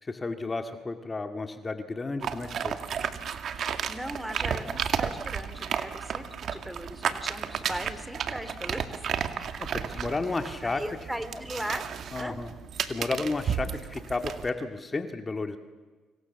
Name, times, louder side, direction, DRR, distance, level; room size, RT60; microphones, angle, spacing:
voice 1, 0.0-2.8 9.6-10.8 12.1-12.5 12.9-15.6, left 3 dB, 30° left, 7 dB, 2.2 m, -32 dB
sound 1, 2.2-14.5, right 7 dB, 60° right, 2.1 m, -33 dB
voice 2, 3.9-9.2 9.9-10.1 10.6-11.8 12.2-12.4, equal, 5° right, 11 dB, 3.0 m, -38 dB
30.0 x 26.5 x 7.1 m, 1.4 s
supercardioid pair, 60°, 0 cm